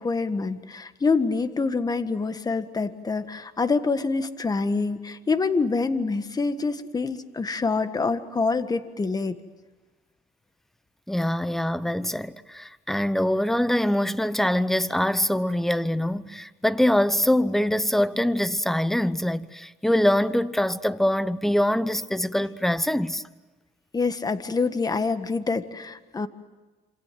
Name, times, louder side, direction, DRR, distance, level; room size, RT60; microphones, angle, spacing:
voice 1, 0.0-9.4 23.9-26.3, left 4 dB, 20° left, 1.6 m, -26 dB
voice 2, 11.1-23.2, left 1 dB, ahead, 1.0 m, -24 dB
27.0 x 27.0 x 7.7 m
cardioid pair, 110°, 17 cm